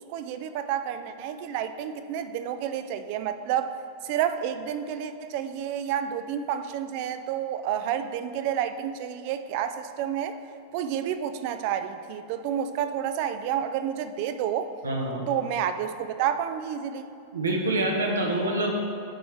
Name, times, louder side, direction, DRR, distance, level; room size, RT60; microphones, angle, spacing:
voice 1, 0.0-3.7 4.0-10.4 10.7-14.7 15.3-17.1, right 9 dB, 45° right, 10 dB, 0.3 m, -30 dB
voice 2, 14.8-15.2 17.3-18.7, right 1 dB, 70° right, 1 dB, 0.9 m, -26 dB
10.0 x 4.1 x 3.2 m, 2.5 s
figure-of-eight pair, 90°, 0 cm